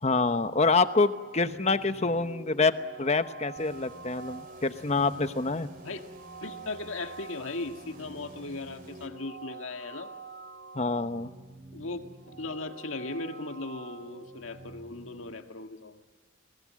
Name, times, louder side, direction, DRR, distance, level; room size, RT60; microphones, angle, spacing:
voice 1, 0.0-5.7 10.7-11.3, left 3 dB, 35° left, 10 dB, 0.9 m, -26 dB
sound 1, 0.6-15.3, right 4 dB, 75° right, 2.7 m, -47 dB
sound 2, 3.6-9.1, right 1 dB, 45° right, 3.2 m, -52 dB
voice 2, 6.4-10.1 11.7-12.0 12.3-16.0, left 3 dB, 80° left, 5 dB, 1.8 m, -37 dB
29.0 x 20.5 x 7.6 m, 1.3 s
head